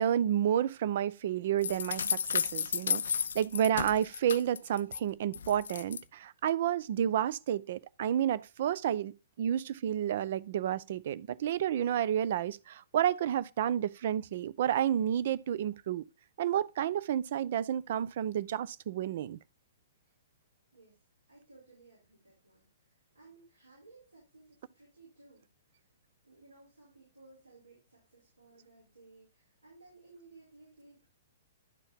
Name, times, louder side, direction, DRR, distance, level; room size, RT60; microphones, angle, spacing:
voice 1, 0.0-3.0 3.3-16.0 16.4-19.4, right 10 dB, 55° right, 0.5 m, -30 dB
sound 1, 1.6-5.0 5.3-6.0, left 7 dB, 70° left, 0.3 m, -33 dB
voice 2, 21.3-25.9 26.2-31.1, right 3 dB, 85° right, 5.2 m, -59 dB
11.5 x 4.5 x 3.5 m
figure-of-eight pair, 120°, 0 cm